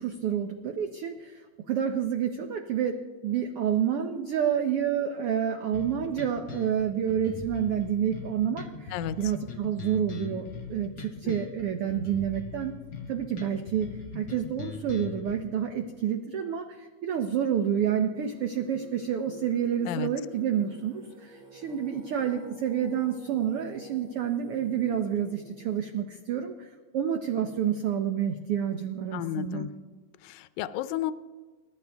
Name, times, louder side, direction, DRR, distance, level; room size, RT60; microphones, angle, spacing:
voice 1, 0.0-1.4 1.7-3.0 3.2-12.7 13.1-26.7 26.9-29.7, right 9 dB, 75° right, 5 dB, 1.3 m, -29 dB
sound 1, 5.7-15.3, left 5 dB, 50° left, 1.4 m, -41 dB
voice 2, 8.9-9.3 11.2-11.4 19.9-20.1 29.1-29.7 30.2-31.1, left 11 dB, 80° left, 13 dB, 1.9 m, -32 dB
Singing, 18.1-26.0, right 2 dB, 40° right, 2.9 m, -50 dB
29.5 x 12.5 x 3.5 m, 1.4 s
omnidirectional pair, 3.6 m